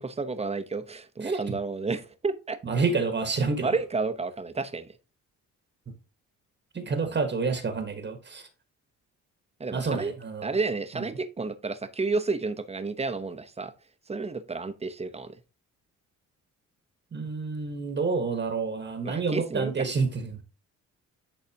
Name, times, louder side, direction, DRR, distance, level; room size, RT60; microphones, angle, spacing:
voice 1, 0.0-2.6 3.6-4.9 9.6-10.1 10.4-13.7 14.1-15.4 19.0-19.9, right 3 dB, 20° right, 0.8 m, -31 dB
voice 2, 2.6-3.7 6.7-8.5 9.7-10.5 10.9-11.1 17.1-20.4, right 4 dB, 35° right, 1.3 m, -29 dB
10.5 x 4.0 x 2.8 m
cardioid pair, 90°, 30 cm